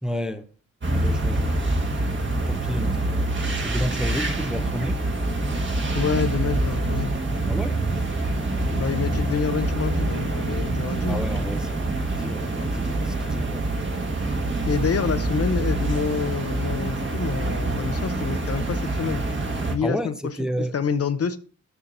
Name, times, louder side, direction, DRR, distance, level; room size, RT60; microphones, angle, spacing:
voice 1, 0.0-0.5 0.9-1.6 2.3-3.3 3.6-5.0 7.5-7.8 11.1-13.6 19.8-20.1 20.4-20.8, equal, ahead, 0.6 m, -31 dB
sound 1, 0.8-19.7, right 2 dB, 35° right, 1.6 m, -26 dB
voice 2, 5.9-7.1 8.7-11.2 14.7-19.3 19.7-21.4, left 6 dB, 50° left, 0.7 m, -27 dB
13.5 x 5.7 x 2.6 m
cardioid pair, 90°, 32 cm